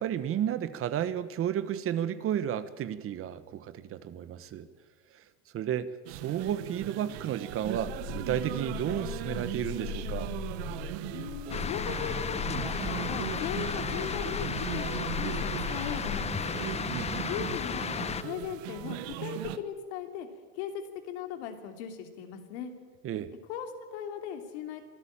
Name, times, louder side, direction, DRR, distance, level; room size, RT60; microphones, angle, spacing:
voice 1, 0.0-4.7 5.1-5.2 5.5-10.3 16.9-17.3 23.0-23.3, right 10 dB, 40° right, 14 dB, 1.3 m, -32 dB
sound 1, 6.1-19.6, right 13 dB, 75° right, 1.2 m, -38 dB
sound 2, 7.6-16.2, left 8 dB, 60° left, 5.2 m, -40 dB
voice 2, 11.1-14.9 15.1-16.5 17.1-20.3 20.5-22.7 23.5-24.8, left 9 dB, 80° left, 6 dB, 3.0 m, -38 dB
sound 3, 11.5-18.2, left 6 dB, 20° left, 0.7 m, -34 dB
24.0 x 13.5 x 8.8 m, 1.4 s
supercardioid pair, 110°, 33 cm